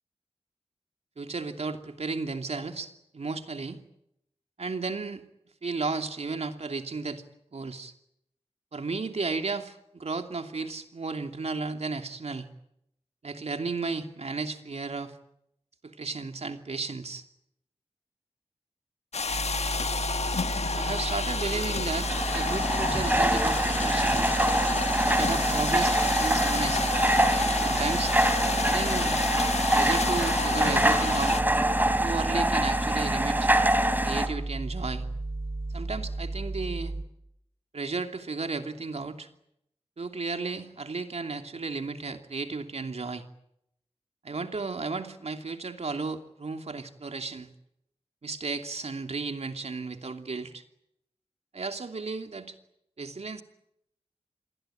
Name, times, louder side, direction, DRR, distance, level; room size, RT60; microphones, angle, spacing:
voice 1, 1.2-3.8 4.6-5.2 5.6-7.2 7.5-7.9 8.7-12.5 13.2-15.1 15.8-17.2 20.7-24.3 25.0-26.9 27.6-28.1 28.6-29.2 29.7-31.4 32.0-33.5 34.0-35.0 35.7-36.9 37.7-39.3 40.0-43.2 44.2-47.5 48.2-50.6 51.5-52.6 53.0-53.4, right 4 dB, 75° right, 6 dB, 2.8 m, -34 dB
sound 1, 19.1-31.4, left 4 dB, 80° left, 1.4 m, -31 dB
sound 2, 19.3-37.0, right 2 dB, 60° right, 4.7 m, -34 dB
sound 3, 21.9-34.3, right 1 dB, 15° right, 3.5 m, -25 dB
27.5 x 22.0 x 9.2 m, 0.78 s
wide cardioid pair, 80°, 11 cm